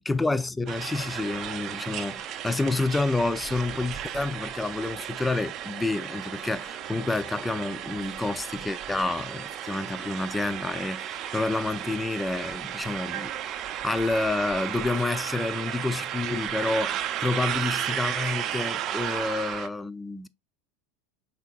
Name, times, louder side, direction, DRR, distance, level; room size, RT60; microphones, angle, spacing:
voice 1, 0.0-13.3 13.8-20.3, left 2 dB, 10° left, 0.3 m, -29 dB
sound 1, 0.7-19.7, right 10 dB, 45° right, 0.5 m, -34 dB
5.6 x 3.5 x 2.3 m
hypercardioid pair, 90°, 0 cm